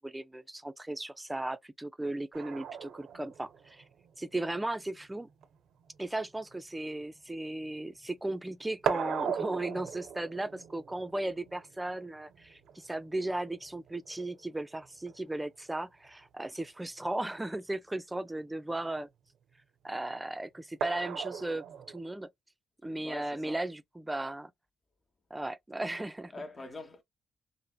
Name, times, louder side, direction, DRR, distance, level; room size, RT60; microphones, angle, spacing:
voice 1, 0.0-3.8 4.2-5.3 6.0-19.1 19.8-22.3 22.8-24.5 25.3-26.3, right 2 dB, 15° right, 0.4 m, -36 dB
sound 1, 2.3-8.1 8.3-15.4 16.8-16.9 17.2-17.3 20.8-22.0, right 8 dB, 75° right, 0.4 m, -39 dB
voice 2, 23.0-23.6 26.3-27.0, left 2 dB, 35° left, 0.8 m, -43 dB
3.2 x 2.0 x 2.2 m
supercardioid pair, 65°, 0 cm